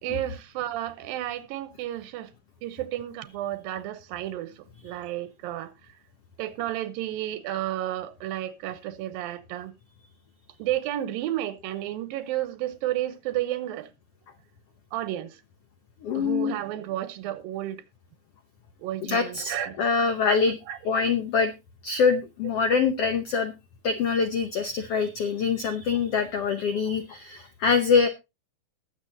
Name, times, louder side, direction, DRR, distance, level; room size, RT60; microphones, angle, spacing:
voice 1, 0.0-2.3 2.6-4.5 4.8-5.7 6.4-9.7 10.6-13.9 14.9-15.4 16.1-17.8 18.8-19.8 20.3-20.4 20.7-20.8, right 13 dB, 90° right, 2.7 m, -32 dB
voice 2, 16.0-16.5 19.1-20.6 20.8-21.5 21.8-23.5 23.8-28.1, left 5 dB, 90° left, 1.3 m, -24 dB
20.5 x 7.2 x 2.8 m
omnidirectional pair, 4.0 m